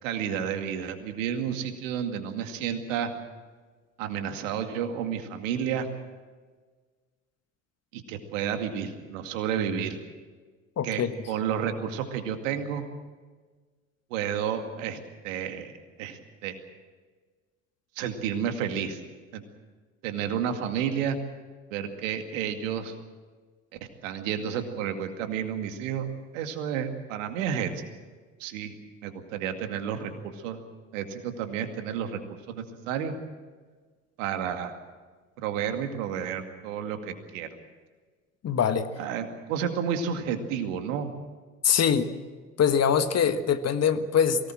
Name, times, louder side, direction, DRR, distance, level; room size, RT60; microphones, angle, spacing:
voice 1, 0.0-3.1 4.0-5.9 7.9-10.0 10.8-12.8 14.1-15.0 15.2-16.6 18.0-19.0 19.3-19.4 20.0-21.2 21.7-22.9 24.0-27.8 28.4-28.7 29.0-30.6 30.9-32.2 32.5-33.1 34.2-34.8 35.4-37.5 39.0-41.1, right 8 dB, 70° right, 7 dB, 2.3 m, -31 dB
voice 2, 10.8-11.1 38.4-38.9 41.6-42.1 42.6-44.5, left 7 dB, 40° left, 10 dB, 1.6 m, -23 dB
23.0 x 18.5 x 7.6 m, 1.4 s
hypercardioid pair, 60°, 40 cm